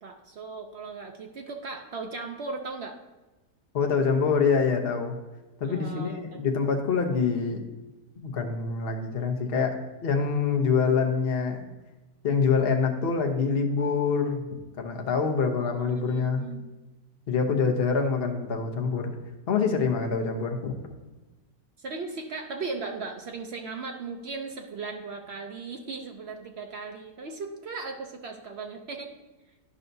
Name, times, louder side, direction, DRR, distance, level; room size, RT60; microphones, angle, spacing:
voice 1, 0.0-3.0 5.6-6.2 15.8-16.7 21.8-29.1, right 4 dB, 65° right, 3 dB, 0.6 m, -37 dB
voice 2, 3.7-5.2 5.6-7.6 8.2-11.7 12.2-16.5 17.3-19.1 19.5-20.9, left 5 dB, 45° left, 4 dB, 0.9 m, -26 dB
11.0 x 5.5 x 2.7 m, 1.1 s
omnidirectional pair, 1.7 m